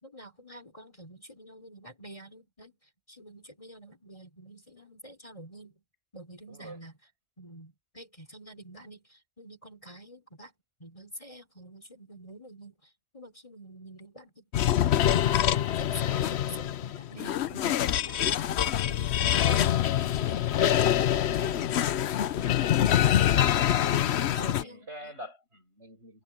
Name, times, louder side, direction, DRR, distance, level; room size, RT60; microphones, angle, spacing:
voice 1, 0.0-5.8 6.1-6.9 7.4-10.5 10.8-15.0 15.4-21.8 22.3-23.3 23.6-25.1, right 1 dB, 25° left, 3.8 m, -48 dB
voice 2, 6.5-6.8 23.0-23.4 24.2-26.2, equal, 55° right, 6.0 m, -45 dB
sound 1, 14.5-24.6, left 11 dB, 60° left, 0.9 m, -25 dB
omnidirectional pair, 1.3 m